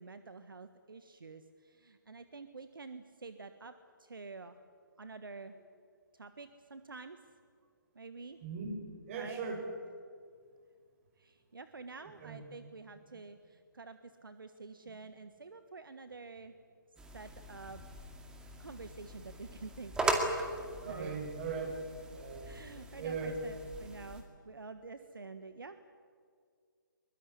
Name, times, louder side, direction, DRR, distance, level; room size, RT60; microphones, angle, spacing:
voice 1, 0.0-3.7 4.0-4.6 5.0-5.5 6.1-7.2 7.9-8.4 9.1-9.4 11.2-16.5 17.1-18.0 18.6-20.3 20.8-21.2 22.4-25.8, right 4 dB, 75° right, 10 dB, 1.4 m, -48 dB
voice 2, 8.4-8.7 9.1-9.6 12.0-12.4 20.8-21.7 22.1-22.5 23.0-23.4, right 5 dB, 35° right, 3 dB, 6.9 m, -39 dB
sound 1, 17.0-24.2, right 2 dB, 5° right, 2.2 m, -39 dB
23.0 x 21.5 x 9.8 m, 2.1 s
figure-of-eight pair, 140°, 11 cm